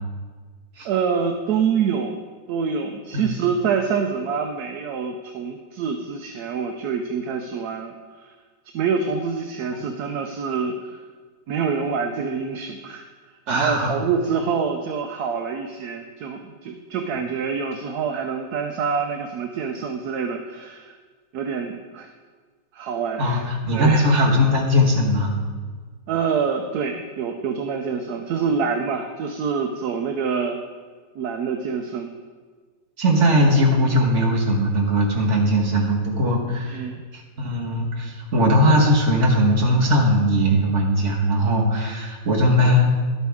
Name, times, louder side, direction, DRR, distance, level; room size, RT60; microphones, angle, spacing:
voice 1, 0.8-2.2 2.5-8.3 8.7-11.0 11.5-13.0 13.5-20.9 21.3-22.1 22.7-24.1 26.1-30.6 31.1-32.1 36.5-37.0, right 6 dB, 70° right, 5 dB, 1.1 m, -26 dB
voice 2, 13.5-13.9 23.2-25.3 33.0-36.8 37.1-42.9, equal, 45° right, -1 dB, 1.7 m, -19 dB
11.5 x 8.4 x 3.6 m, 1.5 s
omnidirectional pair, 1.8 m